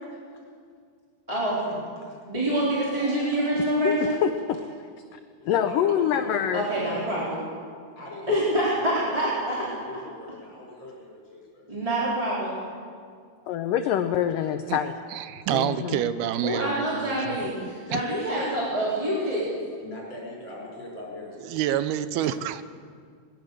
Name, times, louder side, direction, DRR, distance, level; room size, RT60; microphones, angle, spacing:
voice 1, 1.3-1.8 2.3-4.2 6.5-7.4 8.3-9.6 11.7-12.5 16.4-19.5, right 1 dB, 10° right, -7 dB, 3.9 m, -26 dB
voice 2, 2.9-3.7 5.4-7.5 8.0-11.6 15.5-15.8 19.8-21.6, left 1 dB, 30° left, -4 dB, 5.5 m, -42 dB
voice 3, 3.8-4.6 5.5-6.6 13.5-15.0 15.5-16.0, left 9 dB, 75° left, 8 dB, 2.0 m, -25 dB
voice 4, 15.1-18.0 21.4-22.6, right 11 dB, 80° right, 13 dB, 2.6 m, -28 dB
21.5 x 20.0 x 6.8 m, 2.1 s
omnidirectional pair, 4.7 m